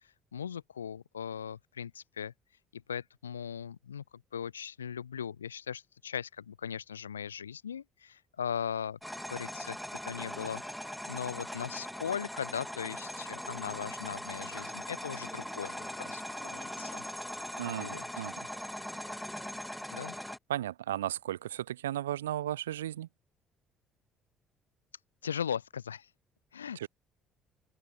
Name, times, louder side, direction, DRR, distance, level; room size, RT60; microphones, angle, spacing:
voice 1, 0.3-2.3 2.7-4.0 4.3-9.0 9.3-9.8 10.0-10.6 11.1-16.9 17.6-18.2 19.9-20.2 25.2-26.1 26.5-26.9, left 8 dB, 85° left, 3.8 m, -39 dB
sound 1, 9.0-20.4, equal, 5° left, 6.8 m, -40 dB
voice 2, 17.6-18.3 20.5-23.1 26.8-26.9, right 12 dB, 80° right, 2.5 m, -35 dB
open air
figure-of-eight pair, 50°, 0 cm